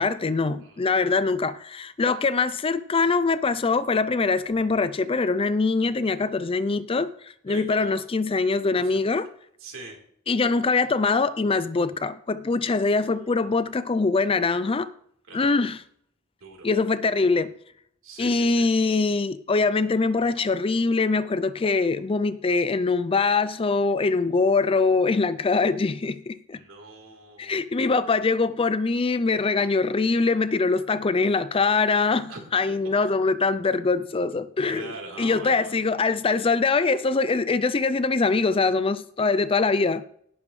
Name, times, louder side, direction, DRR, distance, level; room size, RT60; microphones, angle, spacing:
voice 1, 0.0-9.3 10.3-14.9 15.3-15.8 16.6-17.5 18.2-26.6 27.4-40.0, left 4 dB, 25° left, 0.4 m, -23 dB
voice 2, 7.5-8.0 9.6-10.0 13.1-13.4 15.3-15.5 16.4-16.7 18.0-18.6 26.5-27.6 32.3-32.4 34.7-35.8, right 3 dB, 70° right, 3.7 m, -42 dB
18.0 x 7.1 x 3.2 m
head